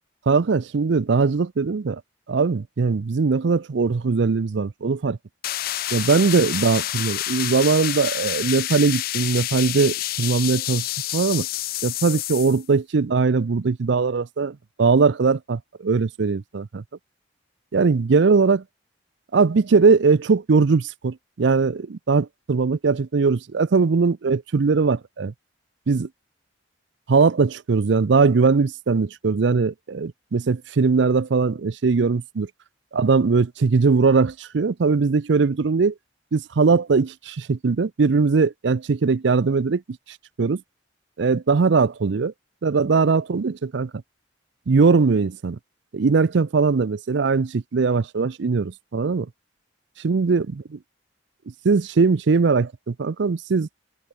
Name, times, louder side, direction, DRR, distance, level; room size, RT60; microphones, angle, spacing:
voice 1, 0.3-2.0 2.3-5.2 5.9-10.9 11.1-11.5 11.8-16.8 17.7-18.6 19.3-25.3 25.9-26.1 27.1-32.5 32.9-35.9 36.3-39.8 40.4-40.6 41.2-42.3 42.6-43.9 44.7-45.6 45.9-49.3 50.0-50.5 51.6-53.7, right 4 dB, 65° right, 0.5 m, -20 dB
sound 1, 5.4-12.6, left 14 dB, 50° left, 0.4 m, -28 dB
head